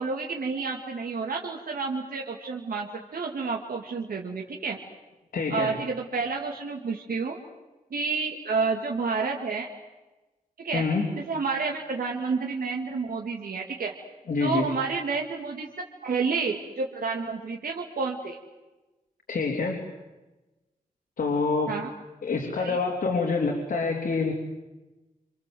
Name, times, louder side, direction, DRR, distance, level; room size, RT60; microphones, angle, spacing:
voice 1, 0.0-4.8 5.5-7.4 7.9-9.7 10.6-10.9 11.3-13.9 14.4-18.4 21.7-21.9 22.6-22.8, right 4 dB, 80° right, 0 dB, 2.4 m, -30 dB
voice 2, 5.3-5.7 10.7-11.1 14.3-14.7 19.3-19.8 21.2-21.8 22.2-24.3, left 4 dB, 90° left, 0 dB, 3.6 m, -26 dB
28.0 x 26.5 x 7.9 m, 1.1 s
wide cardioid pair, 130°, 15 cm